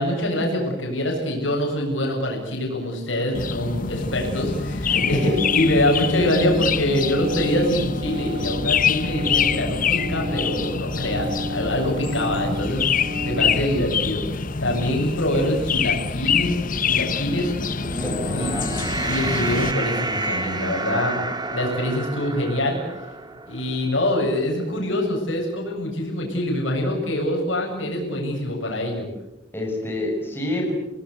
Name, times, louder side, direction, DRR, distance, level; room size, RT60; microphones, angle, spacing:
voice 1, 0.0-12.9 13.2-17.5 18.3-18.5 19.0-21.2 21.5-22.8 23.5-29.1, left 1 dB, 90° left, 1 dB, 7.7 m, -24 dB
sound 1, 3.3-19.7, left 6 dB, 45° left, 1.0 m, -26 dB
sound 2, 4.7-13.6, equal, 45° right, 2.6 m, -33 dB
voice 2, 4.9-5.4 17.9-18.8 29.5-30.7, left 1 dB, 10° left, 0 dB, 6.4 m, -28 dB
sound 3, 17.5-24.0, right 2 dB, 20° right, 2.4 m, -30 dB
28.5 x 19.5 x 8.3 m, 0.96 s
head